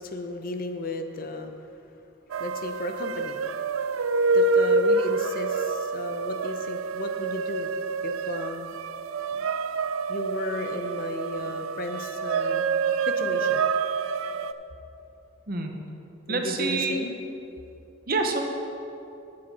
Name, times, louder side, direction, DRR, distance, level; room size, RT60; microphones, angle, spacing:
voice 1, 0.0-1.7 2.4-7.7 8.0-8.8 10.1-12.7 13.0-13.6 16.3-17.2, left 2 dB, 45° left, 6 dB, 0.6 m, -34 dB
sound 1, 2.3-14.5, right 4 dB, 80° right, 0.4 m, -27 dB
voice 2, 16.3-16.9 18.1-18.4, right 3 dB, 45° right, 3 dB, 0.9 m, -26 dB
11.5 x 7.6 x 4.3 m, 2.8 s
head